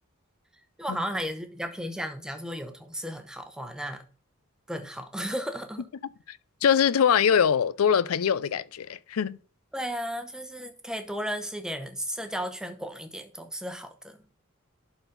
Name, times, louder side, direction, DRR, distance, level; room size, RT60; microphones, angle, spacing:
voice 1, 0.8-4.0 4.7-5.9 9.7-14.2, equal, 5° right, 0.9 m, -34 dB
voice 2, 6.3-9.4, left 7 dB, 80° left, 0.4 m, -23 dB
11.0 x 4.0 x 3.9 m
head